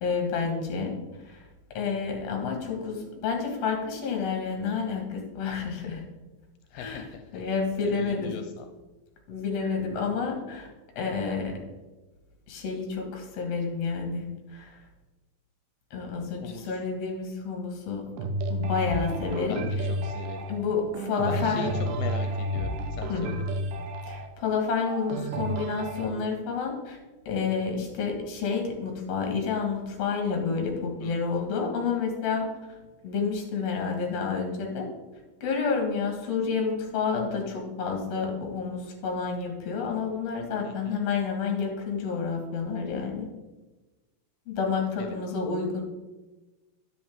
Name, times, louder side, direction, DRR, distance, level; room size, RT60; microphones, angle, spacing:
voice 1, 0.0-1.0 1.2-1.4 1.7-6.0 6.7-7.1 7.3-8.3 9.3-10.7 11.0-11.6 12.5-14.2 14.5-14.8 15.9-18.1 18.5-19.6 20.5-21.7 23.1-23.3 24.1-27.0 27.3-32.5 33.0-34.9 35.4-43.3 44.5-45.8, left 5 dB, 55° left, 2 dB, 2.5 m, -29 dB
voice 2, 6.7-7.4 7.8-8.7 16.4-16.8 19.5-20.5 21.3-23.6 31.0-31.2 40.6-41.0 45.0-45.2, left 6 dB, 85° left, 6 dB, 2.3 m, -39 dB
sound 1, 18.2-26.1, right 1 dB, 75° right, 2.3 m, -31 dB
10.0 x 7.8 x 3.6 m, 1.2 s
omnidirectional pair, 3.9 m